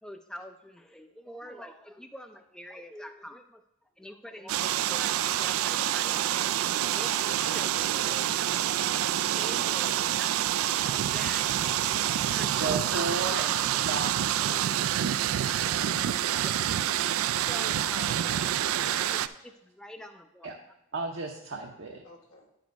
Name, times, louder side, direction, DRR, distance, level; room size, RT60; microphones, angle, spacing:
voice 1, 0.0-3.6 4.0-6.3 6.9-8.8 9.3-10.4 10.7-11.6 12.3-14.3 16.4-16.6 17.5-18.3 19.1-20.5, equal, 5° left, 6 dB, 0.4 m, -45 dB
sound 1, 4.5-19.3, right 11 dB, 75° right, 0.3 m, -27 dB
voice 2, 12.5-14.8 20.4-20.6 20.9-22.0, right 3 dB, 60° right, 0 dB, 0.8 m, -35 dB
voice 3, 17.7-19.3 22.0-22.5, left 2 dB, 85° left, -1 dB, 1.7 m, -49 dB
10.0 x 5.1 x 4.5 m, 0.87 s
head